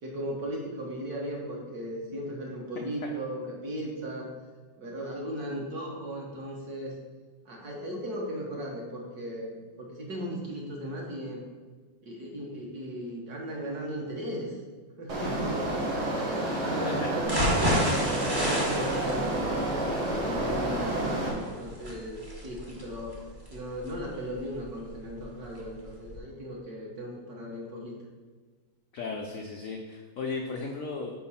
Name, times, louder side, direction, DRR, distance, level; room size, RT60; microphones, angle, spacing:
voice 1, 0.0-4.3 4.8-6.9 7.4-11.4 12.0-14.6 15.0-19.8 20.2-23.2 23.5-27.9, equal, 55° right, -2 dB, 1.6 m, -37 dB
sound 1, 15.1-21.3, right 1 dB, 75° right, 2.1 m, -30 dB
sound 2, 17.3-25.2 25.6-25.7 26.1-26.2, equal, 20° right, 0.7 m, -31 dB
voice 2, 28.9-31.1, left 4 dB, 80° left, 1 dB, 0.7 m, -35 dB
5.0 x 4.7 x 5.6 m, 1.4 s
omnidirectional pair, 2.2 m